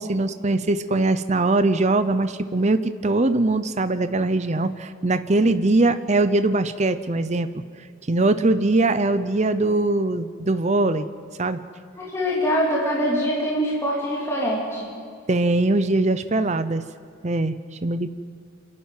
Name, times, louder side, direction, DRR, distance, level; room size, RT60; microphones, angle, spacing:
voice 1, 0.0-7.6 8.1-11.1 11.4-11.6 15.3-16.8 17.2-17.5 17.8-18.1, right 2 dB, 35° right, 11 dB, 0.6 m, -21 dB
voice 2, 12.0-14.9, equal, 15° left, -6 dB, 3.2 m, -24 dB
27.5 x 12.0 x 9.3 m, 2.4 s
head